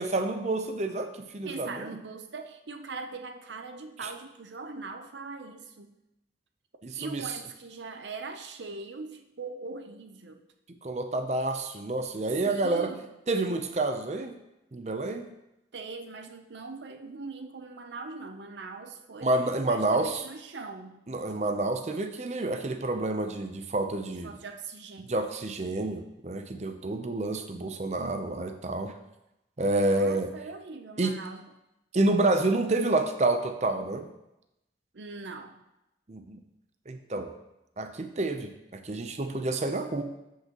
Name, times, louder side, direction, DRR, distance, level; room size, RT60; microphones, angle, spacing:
voice 1, 0.0-1.9 4.0-4.1 6.8-7.2 10.8-12.9 13.3-14.3 14.7-15.2 19.2-20.2 21.1-24.4 25.1-28.9 29.6-30.3 31.0-31.1 31.9-34.1 36.1-36.4 36.9-37.3 37.8-40.0, right 2 dB, 40° right, 7 dB, 0.6 m, -28 dB
voice 2, 1.4-5.9 7.0-10.4 12.4-13.1 15.7-21.0 24.1-25.1 28.0-28.5 29.9-31.5 34.9-35.6, right 3 dB, 90° right, 6 dB, 0.7 m, -41 dB
12.0 x 5.6 x 3.0 m, 0.90 s
head